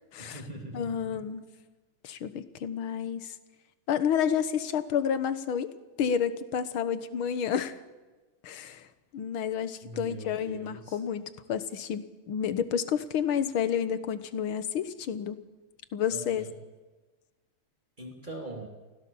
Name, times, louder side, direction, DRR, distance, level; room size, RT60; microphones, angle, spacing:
voice 1, 0.2-1.2 9.8-11.0 16.1-16.5 18.0-18.7, right 2 dB, 20° right, -1 dB, 3.0 m, -42 dB
voice 2, 0.7-1.4 2.0-3.3 3.9-5.7 6.0-7.8 8.4-8.9 9.1-15.4 15.9-16.4, left 8 dB, 75° left, 12 dB, 2.0 m, -30 dB
24.0 x 16.5 x 7.1 m, 1.2 s
omnidirectional pair, 2.3 m